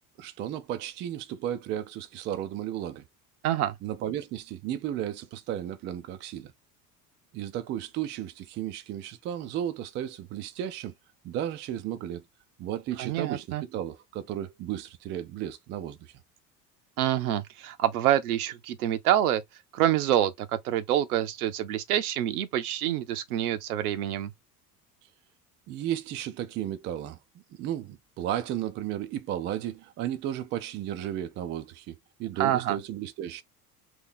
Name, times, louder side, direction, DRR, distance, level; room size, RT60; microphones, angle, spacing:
voice 1, 0.2-3.0 3.8-6.5 7.3-10.9 11.2-12.2 12.6-16.1 25.7-27.2 27.6-33.4, right 11 dB, 25° right, 0.3 m, -34 dB
voice 2, 3.4-3.8 13.0-13.6 17.0-19.4 19.7-24.3 32.4-32.8, right 12 dB, 65° right, 0.7 m, -26 dB
2.9 x 2.8 x 3.8 m
figure-of-eight pair, 70°, 47 cm